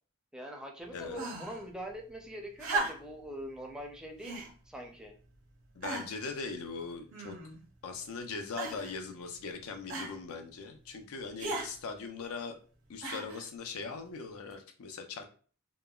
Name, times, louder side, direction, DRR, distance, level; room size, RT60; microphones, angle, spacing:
voice 1, 0.3-5.1, equal, 5° right, 0 dB, 0.4 m, -43 dB
sound 1, 1.1-1.6 2.6-3.2 4.2-4.5 5.2-5.3 5.8-6.3 7.1-7.6 8.6-9.0 9.9-10.2 11.4-11.7 13.0-13.5 14.5-14.6, right 2 dB, 70° right, 0.7 m, -36 dB
voice 2, 5.7-7.4 7.8-12.6 12.9-15.3, left 4 dB, 80° left, 6 dB, 0.5 m, -40 dB
2.9 x 2.2 x 2.3 m, 0.42 s
head